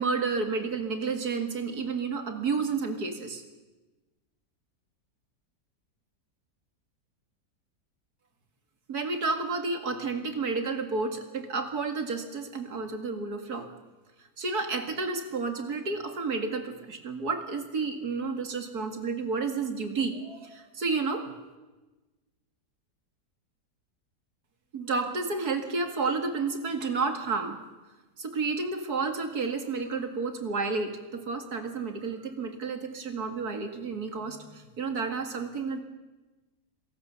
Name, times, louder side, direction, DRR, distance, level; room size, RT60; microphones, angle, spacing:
voice 1, 0.0-3.4 8.9-13.7 14.4-21.3 24.7-27.6 28.2-35.8, right 4 dB, 65° right, 6 dB, 2.6 m, -31 dB
27.5 x 17.5 x 7.1 m, 1.2 s
omnidirectional pair, 1.8 m